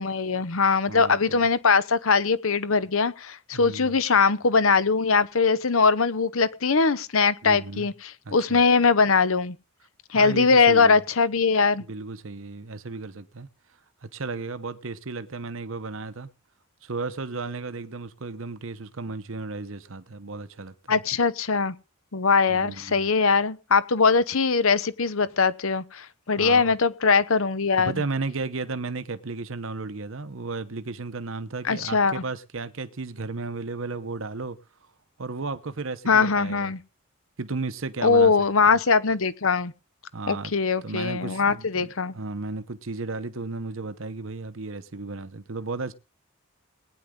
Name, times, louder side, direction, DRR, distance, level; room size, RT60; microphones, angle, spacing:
voice 1, 0.0-9.6 10.1-11.8 20.9-21.7 22.1-28.0 31.6-32.2 36.1-36.8 38.0-39.7 40.3-42.1, left 4 dB, 70° left, 0.9 m, -21 dB
voice 2, 0.9-1.4 3.5-4.0 7.4-7.9 8.2-8.6 10.1-11.0 11.9-13.5 14.1-16.3 16.8-21.0 22.5-23.1 26.4-26.8 27.8-34.6 35.2-36.7 37.4-38.3 38.7-38.8 40.1-40.5 40.8-45.9, right 3 dB, 65° right, 0.9 m, -34 dB
20.0 x 9.8 x 3.8 m
head